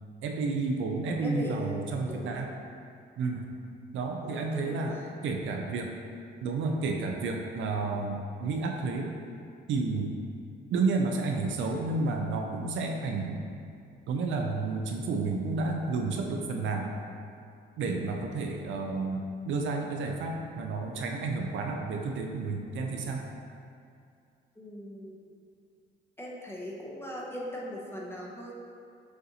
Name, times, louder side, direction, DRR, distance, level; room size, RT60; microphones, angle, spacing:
voice 1, 0.2-2.5 3.2-3.5 3.9-4.9 5.2-6.0 6.4-9.2 9.7-10.2 10.7-13.5 14.1-16.9 17.8-23.3, right 3 dB, 75° right, 2 dB, 0.5 m, -31 dB
voice 2, 1.2-1.8 2.1-2.4 4.2-5.1 17.9-18.3 24.6-25.2 26.2-28.5, equal, 10° left, -3 dB, 0.8 m, -40 dB
6.3 x 2.6 x 2.8 m, 2.4 s
cardioid pair, 90°, 20 cm